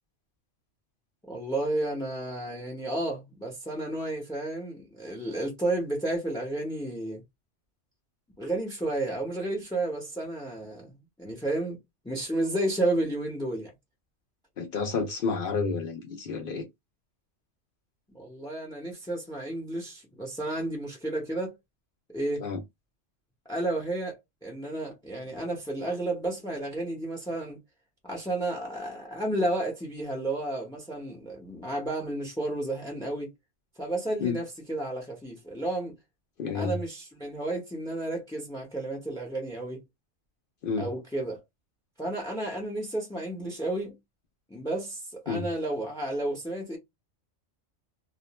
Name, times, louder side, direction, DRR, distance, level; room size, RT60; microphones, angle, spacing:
voice 1, 1.3-7.2 8.4-11.8 12.0-13.7 18.1-21.6 22.1-22.5 23.5-27.6 28.0-33.3 33.8-36.0 36.5-39.8 40.8-41.4 42.0-44.0 44.5-46.8, right 1 dB, 5° left, 0.5 m, -32 dB
voice 2, 14.6-16.6 22.4-22.6 34.2-34.4 36.4-36.8 40.6-40.9 45.3-45.4, left 5 dB, 60° left, 0.6 m, -30 dB
2.4 x 2.1 x 2.9 m
omnidirectional pair, 1.3 m